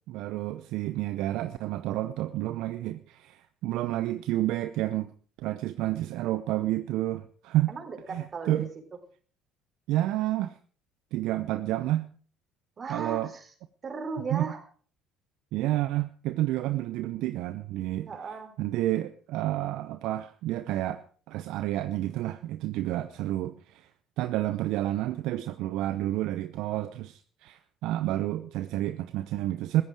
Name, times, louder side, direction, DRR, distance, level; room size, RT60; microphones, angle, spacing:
voice 1, 0.1-5.1 5.4-7.7 8.1-8.7 9.9-10.5 11.1-12.1 12.9-13.3 14.3-14.5 15.5-18.1 18.6-21.0 21.3-23.9 24.2-29.8, right 15 dB, 70° right, 11 dB, 0.7 m, -30 dB
voice 2, 7.7-8.7 12.8-13.5 13.8-14.6 18.1-18.5, right 4 dB, 40° right, 7 dB, 4.1 m, -36 dB
15.0 x 14.5 x 4.9 m, 0.44 s
hypercardioid pair, 65°, 0 cm